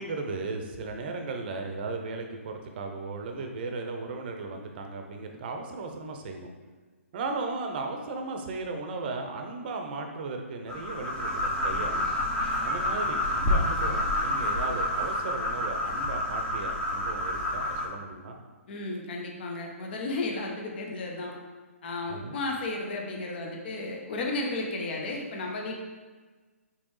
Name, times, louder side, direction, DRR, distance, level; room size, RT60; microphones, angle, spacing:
voice 1, 0.0-6.5 7.1-12.1 12.6-18.4 22.1-22.4, right 3 dB, 45° right, 4 dB, 0.6 m, -36 dB
sound 1, 10.7-17.8, left 1 dB, 10° left, 0.7 m, -28 dB
voice 2, 18.7-21.3 21.8-25.8, left 2 dB, 45° left, 1 dB, 0.8 m, -33 dB
5.1 x 3.3 x 3.1 m, 1.4 s
hypercardioid pair, 140°, 8 cm